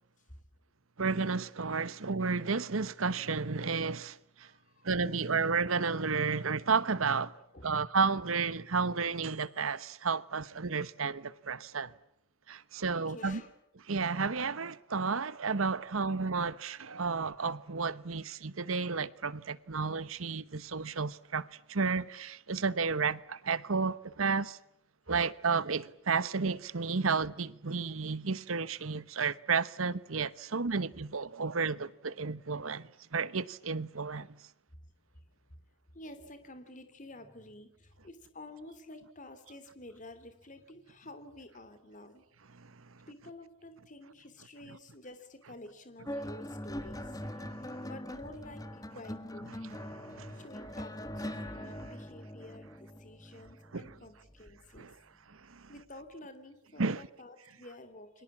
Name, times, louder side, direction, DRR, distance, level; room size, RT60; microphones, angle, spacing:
voice 1, 1.0-4.5 4.8-7.3 7.6-11.9 12.5-13.4 13.9-24.6 25.1-34.4 42.5-42.7 47.4-47.8 49.9-50.4 51.4-51.5 53.7-53.9 54.8-54.9 55.3-55.7 56.8-57.0, right 4 dB, 90° right, 1.1 m, -32 dB
voice 2, 4.4-5.2 7.3-7.8 12.9-13.5 34.7-34.8 35.1-35.6 35.9-42.2 43.1-49.5 50.3-54.9 55.7-58.2, left 1 dB, 40° left, 3.1 m, -50 dB
sound 1, 46.1-54.8 55.8-56.0, equal, 20° left, 1.6 m, -42 dB
29.5 x 23.5 x 7.4 m
head